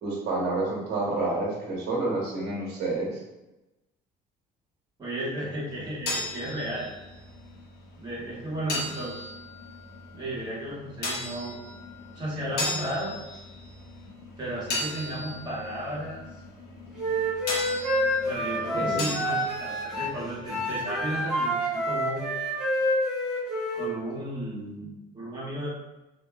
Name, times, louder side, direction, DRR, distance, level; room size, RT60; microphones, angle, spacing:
voice 1, 0.0-3.2 18.8-19.1, right 2 dB, 75° right, -3 dB, 1.2 m, -29 dB
voice 2, 5.0-6.9 8.0-9.3 10.1-11.6 12.1-13.1 14.4-16.2 18.2-22.3 23.7-25.7, right 1 dB, 25° right, -7 dB, 1.4 m, -34 dB
sound 1, 5.6-21.2, left 2 dB, 70° left, 0.7 m, -37 dB
Wind instrument woodwind instrument, 17.0-20.2 20.5-23.9, equal, 5° right, 1.2 m, -28 dB
2.9 x 2.7 x 2.3 m, 1.0 s
cardioid pair, 110°, 17 cm